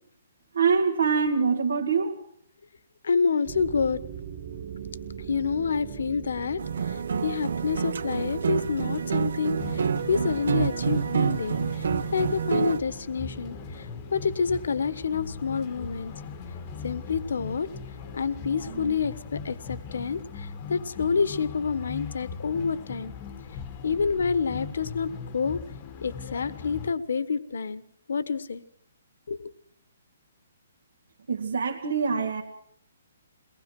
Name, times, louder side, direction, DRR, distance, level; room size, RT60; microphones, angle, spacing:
voice 1, 0.5-2.2 31.3-32.4, right 5 dB, 85° right, 2 dB, 2.1 m, -24 dB
voice 2, 3.0-4.0 5.3-6.6 7.2-11.6 12.1-13.6 14.1-16.1 16.8-17.7 18.1-23.1 23.8-25.6 26.0-27.8 28.1-28.6 29.3-29.5, left 5 dB, 75° left, 15 dB, 1.3 m, -28 dB
sound 1, 3.5-19.0, right 8 dB, 35° right, 2.2 m, -42 dB
sound 2, 6.6-12.8, right 7 dB, 65° right, 0.8 m, -28 dB
sound 3, 9.6-26.9, left 6 dB, 25° left, 1.0 m, -39 dB
22.5 x 19.0 x 6.1 m, 0.66 s
hypercardioid pair, 175°, 0 cm